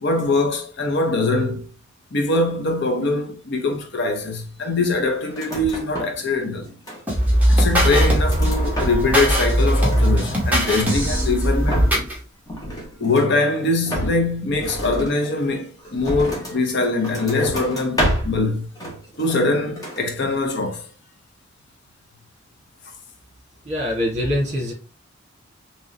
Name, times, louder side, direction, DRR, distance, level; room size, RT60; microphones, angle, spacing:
voice 1, 0.0-1.7 2.1-6.7 7.5-11.9 13.0-18.7 19.2-20.9, left 2 dB, 55° left, 0.7 m, -22 dB
sound 1, 5.3-6.3 6.5-7.3 7.8-9.3 9.6-11.0 11.4-12.2 12.5-13.4 13.9-16.6 17.0-18.4 18.8-19.5 19.8-20.1, equal, 20° left, 1.1 m, -29 dB
sound 2, 7.1-12.1, equal, 10° right, 1.1 m, -19 dB
voice 2, 23.6-24.7, left 1 dB, 35° right, 1.6 m, -23 dB
3.7 x 3.0 x 2.8 m
head